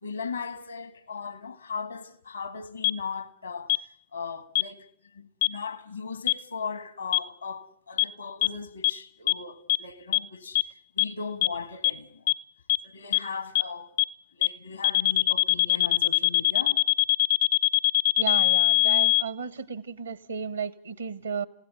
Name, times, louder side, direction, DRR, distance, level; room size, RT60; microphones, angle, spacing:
voice 1, 0.0-3.7 4.1-4.9 5.1-10.7 11.0-12.3 12.8-13.9 14.3-16.8, left 5 dB, 80° left, 1.8 m, -38 dB
sound 1, 2.8-2.9 3.7-3.8 4.6-4.7 5.4-5.5 6.3-6.4 7.1-7.2 8.0-8.1 8.4-8.5 8.8-8.9 9.3-9.4 9.7-9.8 10.1-10.2 10.6-10.7 11.0-11.1 11.4-11.5 11.8-11.9 12.3-12.4 12.7-12.8 13.1-13.2 13.6-13.7 14.0-14.1 14.4-14.5 14.8-19.2, left 18 dB, 60° left, 1.0 m, -21 dB
voice 2, 18.2-21.5, right 6 dB, 75° right, 1.2 m, -33 dB
29.5 x 16.5 x 9.7 m
figure-of-eight pair, 90°, 0 cm